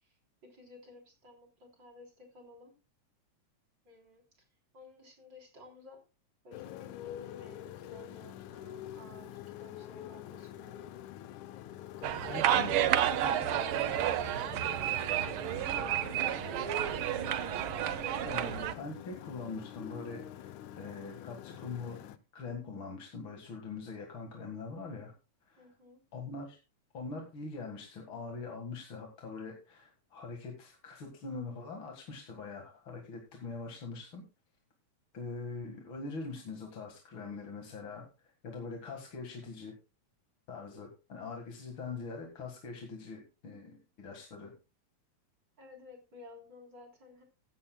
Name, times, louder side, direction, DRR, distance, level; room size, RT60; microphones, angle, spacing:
voice 1, 0.4-2.7 3.8-4.4 4.7-6.0 6.4-10.9 12.0-12.4 12.7-17.0 25.6-26.0 45.6-47.2, left 1 dB, 35° right, 1 dB, 4.1 m, -54 dB
Motorcycle, 6.5-22.2, left 12 dB, 90° left, 2.2 m, -46 dB
sound 1, 12.0-18.7, right 11 dB, 90° right, 1.1 m, -31 dB
voice 2, 12.3-12.8 18.3-22.0 22.3-25.1 25.5-25.7 26.1-26.6 26.9-34.3 35.1-39.7 40.5-44.5, left 4 dB, 45° left, 2 dB, 2.3 m, -43 dB
15.0 x 12.5 x 2.2 m, 0.30 s
omnidirectional pair, 3.4 m